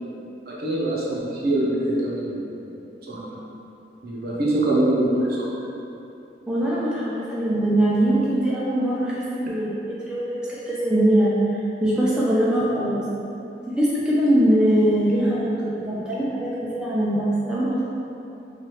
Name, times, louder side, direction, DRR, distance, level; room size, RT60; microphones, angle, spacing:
voice 1, 0.5-2.8 3.1-3.4 4.0-5.5, right 1 dB, 60° right, -5 dB, 0.6 m, -24 dB
voice 2, 6.5-13.0 13.7-17.8, right 1 dB, 5° right, -8 dB, 0.3 m, -22 dB
3.1 x 2.3 x 2.9 m, 2.8 s
head